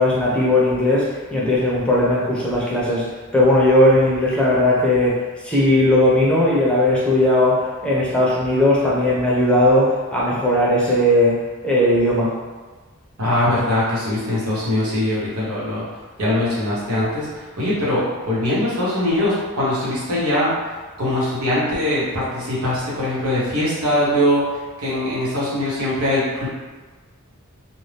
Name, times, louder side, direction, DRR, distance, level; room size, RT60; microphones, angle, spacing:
voice 1, 0.0-12.4, left 1 dB, 5° left, -6 dB, 0.6 m, -18 dB
voice 2, 13.2-15.8 16.2-20.5 21.0-26.5, left 1 dB, 90° right, -8 dB, 1.1 m, -22 dB
2.6 x 2.1 x 3.3 m, 1.3 s
head